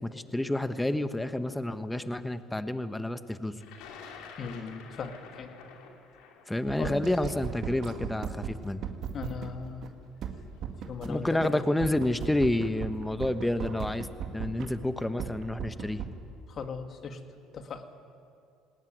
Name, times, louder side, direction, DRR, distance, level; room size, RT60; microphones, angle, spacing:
voice 1, 0.0-3.5 6.5-8.8 11.0-14.1 14.3-16.0, left 1 dB, 10° left, 11 dB, 1.2 m, -29 dB
Thunder, 3.6-9.6 10.5-10.6 11.8-12.0 12.3-12.8, left 6 dB, 75° left, 2.7 m, -50 dB
voice 2, 4.4-5.5 6.8-7.0 9.1-9.8 10.9-11.6 16.5-17.2 17.5-17.9, left 5 dB, 50° left, 6 dB, 2.2 m, -38 dB
sound 1, 6.7-9.5 9.8-9.9 10.2-11.1 11.4-11.5 11.8-14.7 15.0-16.1, right 8 dB, 55° right, 2.0 m, -36 dB
20.0 x 18.5 x 9.3 m, 2.4 s
hypercardioid pair, 70°, 0 cm